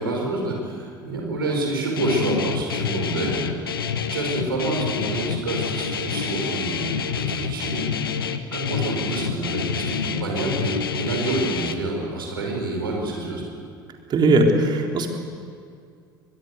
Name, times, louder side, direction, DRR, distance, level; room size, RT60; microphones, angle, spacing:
voice 1, 0.0-3.5 4.1-7.9 8.5-13.4, right 2 dB, 80° right, 0 dB, 5.3 m, -27 dB
Guitar, 2.0-11.7, left 7 dB, 80° left, 1.1 m, -27 dB
voice 2, 14.1-15.1, right 2 dB, 40° right, 2 dB, 3.7 m, -18 dB
24.5 x 20.5 x 8.1 m, 2.3 s
figure-of-eight pair, 65°, 12 cm